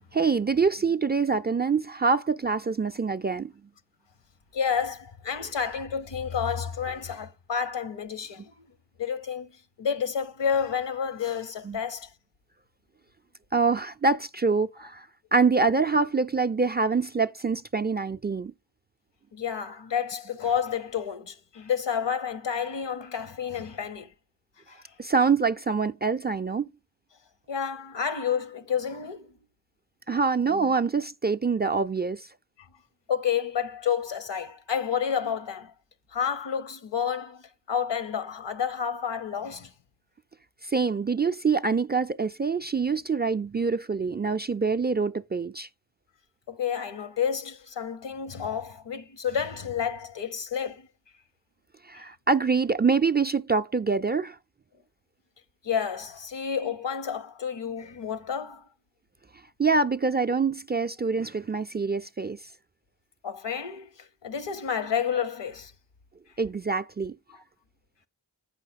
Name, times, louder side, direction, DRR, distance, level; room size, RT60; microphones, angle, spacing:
voice 1, 0.1-3.5 11.6-11.8 13.5-15.1 15.3-18.5 25.0-26.7 30.1-32.3 40.7-45.7 51.9-54.3 59.6-62.4 66.4-67.1, right 4 dB, 25° right, 0.3 m, -25 dB
voice 2, 4.5-8.5 9.0-9.5 9.8-12.1 19.3-24.1 24.7-24.8 27.5-29.3 33.1-35.7 36.1-37.4 37.7-39.7 46.5-50.9 55.6-58.6 63.2-63.9 64.2-65.7 67.3-67.4, left 7 dB, 75° left, 1.0 m, -30 dB
8.2 x 5.7 x 4.0 m
cardioid pair, 45°, 44 cm